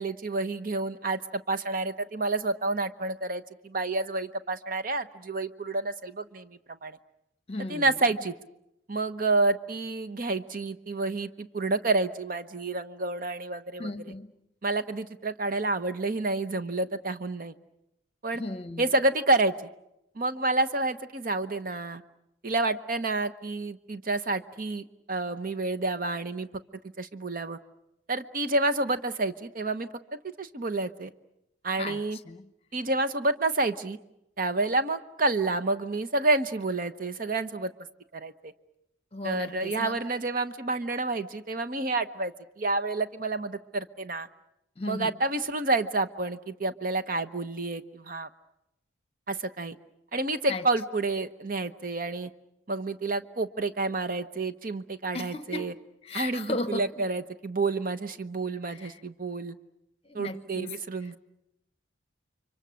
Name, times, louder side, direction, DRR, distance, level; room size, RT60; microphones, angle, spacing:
voice 1, 0.0-7.0 7.7-8.3 8.9-13.9 14.6-17.5 18.2-18.4 18.8-19.5 20.1-22.0 22.4-26.5 27.0-27.6 28.1-31.1 31.6-32.2 32.7-34.0 34.4-37.7 38.1-38.5 39.2-44.3 44.8-48.3 49.3-49.8 50.1-52.3 52.7-55.7 56.1-59.5 60.1-61.2, right 2 dB, 45° right, 0.9 m, -29 dB
voice 2, 7.5-8.0 13.8-14.3 18.3-18.9 31.8-32.5 39.1-40.0 44.8-45.2 50.5-50.7 55.1-55.7 56.0-57.0 58.7-59.0 60.0-61.1, left 2 dB, 30° left, 1.0 m, -36 dB
30.0 x 24.5 x 6.3 m
head